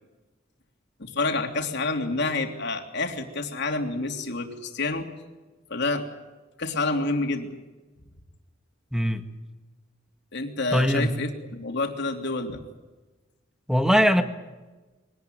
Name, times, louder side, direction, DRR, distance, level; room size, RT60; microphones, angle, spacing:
voice 1, 1.0-5.1 5.7-6.1 6.6-7.5 10.3-12.6, left 3 dB, 60° left, 3 dB, 3.2 m, -28 dB
voice 2, 8.9-9.2 10.7-11.2 13.7-14.2, equal, 5° right, 7 dB, 1.7 m, -21 dB
23.5 x 19.0 x 9.4 m, 1.2 s
head